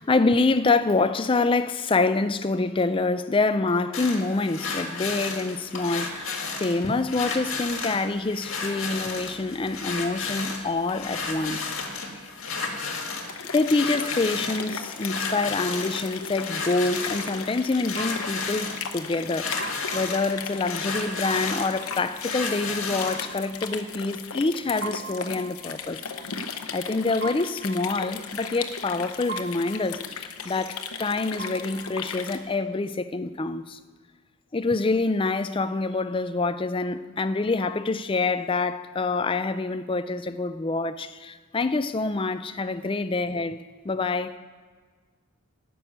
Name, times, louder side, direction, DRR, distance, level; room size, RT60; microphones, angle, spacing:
voice 1, 0.0-11.7 13.5-26.3 26.7-33.8 34.5-43.6 43.8-44.4, left 3 dB, 25° left, 0.4 m, -26 dB
sound 1, 3.9-23.3, left 4 dB, 70° left, 1.7 m, -33 dB
sound 2, 13.2-32.4, left 6 dB, 90° left, 0.9 m, -36 dB
sound 3, 16.9-32.2, right 4 dB, 45° right, 0.6 m, -43 dB
12.0 x 6.2 x 8.8 m
head